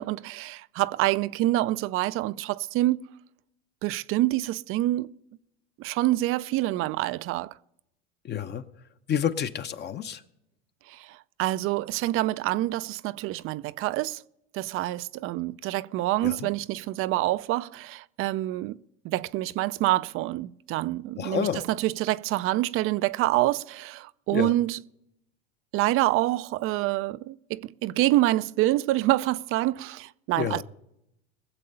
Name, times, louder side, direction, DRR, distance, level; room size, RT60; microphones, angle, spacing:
voice 1, 0.0-3.1 3.8-5.1 5.8-7.5 10.9-14.2 14.5-18.8 19.0-24.8 25.7-30.6, right 16 dB, 40° right, 0.5 m, -26 dB
voice 2, 8.2-8.6 9.1-10.2 16.2-16.4 21.2-21.6 24.3-24.5 30.4-30.6, left 9 dB, 30° left, 0.9 m, -29 dB
20.5 x 7.6 x 5.5 m
hypercardioid pair, 105°, 33 cm